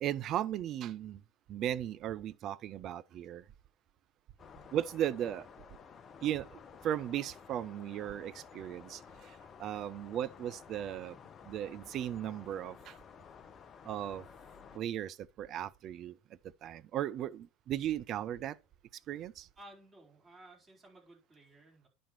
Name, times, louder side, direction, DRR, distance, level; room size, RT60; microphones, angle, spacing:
voice 1, 0.0-1.2 1.5-3.4 4.7-5.5 6.2-11.2 11.4-13.0 13.8-14.3 14.7-16.2 16.6-18.6 19.1-19.5, right 11 dB, 40° right, 0.5 m, -36 dB
sound 1, 4.4-14.8, left 6 dB, 30° left, 0.6 m, -54 dB
voice 2, 19.6-21.9, right 1 dB, 25° right, 4.5 m, -56 dB
10.0 x 4.4 x 4.7 m
figure-of-eight pair, 75°, 0 cm